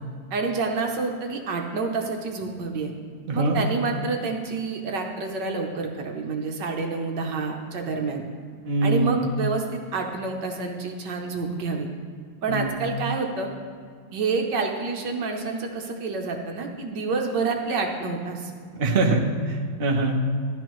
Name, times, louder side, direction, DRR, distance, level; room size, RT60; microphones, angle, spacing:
voice 1, 0.3-2.9 3.3-8.2 8.8-11.9 12.4-13.5 14.1-18.5, right 4 dB, 60° right, 2 dB, 1.4 m, -28 dB
voice 2, 8.6-9.2 12.5-12.8 18.8-19.2 19.5-20.2, right 3 dB, 40° right, 0 dB, 0.8 m, -23 dB
12.5 x 11.0 x 3.1 m, 2.1 s
omnidirectional pair, 2.4 m